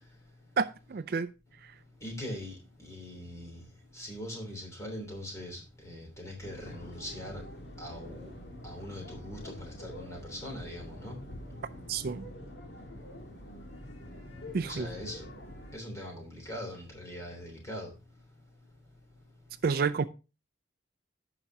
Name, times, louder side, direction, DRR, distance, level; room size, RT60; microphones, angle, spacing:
voice 1, 0.6-1.3 11.9-12.2 14.5-14.9 19.6-20.0, right 5 dB, 50° right, 0.4 m, -29 dB
voice 2, 2.0-3.6 3.9-7.4 7.8-8.3 8.6-11.2 14.6-15.2 15.7-17.9, left 1 dB, 15° left, 3.1 m, -41 dB
sound 1, 6.4-15.7, left 1 dB, 60° left, 2.0 m, -46 dB
15.0 x 5.9 x 2.7 m
head